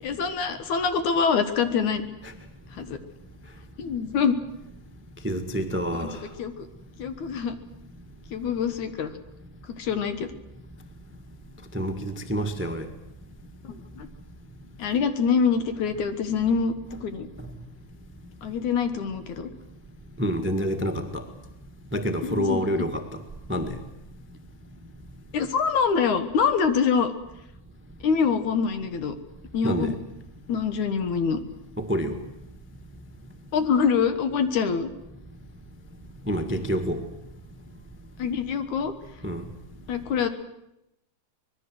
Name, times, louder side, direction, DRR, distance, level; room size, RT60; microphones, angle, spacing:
voice 1, 0.0-2.0 2.7-3.0 3.8-4.4 5.9-6.1 6.4-6.5 7.0-7.5 8.3-9.1 9.8-10.3 13.6-14.1 14.8-16.7 17.0-17.3 18.4-19.5 22.2-22.6 25.3-27.1 28.0-29.1 29.5-30.0 30.5-31.4 33.5-34.9 38.2-38.9 39.9-40.3, left 6 dB, 70° left, 10 dB, 2.8 m, -25 dB
voice 2, 5.2-6.2 11.7-12.9 20.2-21.2 21.9-23.0 23.5-23.8 29.6-29.9 31.8-32.2 36.3-37.0 39.2-39.4, equal, 10° right, 8 dB, 0.8 m, -27 dB
25.0 x 20.5 x 7.9 m, 0.86 s
omnidirectional pair, 3.6 m